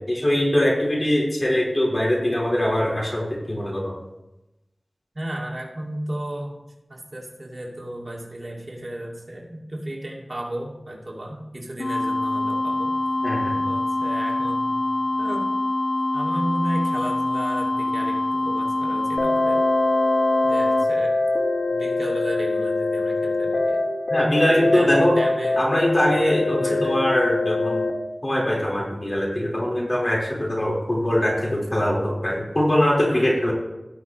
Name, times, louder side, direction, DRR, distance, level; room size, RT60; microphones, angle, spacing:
voice 1, 0.1-3.9 13.2-13.5 24.1-25.1 25.6-27.8 28.2-33.5, left 1 dB, 35° left, -4 dB, 4.2 m, -22 dB
voice 2, 5.1-6.6 6.9-12.9 13.6-14.8 15.2-15.5 16.1-19.6 20.4-21.2 21.7-23.8 24.3-25.6 26.1-26.9 33.0-33.4, right 1 dB, 50° right, -2 dB, 2.3 m, -34 dB
sound 1, 11.8-20.8, left 2 dB, 60° left, 0.3 m, -25 dB
sound 2, 19.2-27.9, left 2 dB, 85° left, 1.1 m, -23 dB
18.0 x 6.1 x 3.1 m, 0.96 s
wide cardioid pair, 45°, 0 cm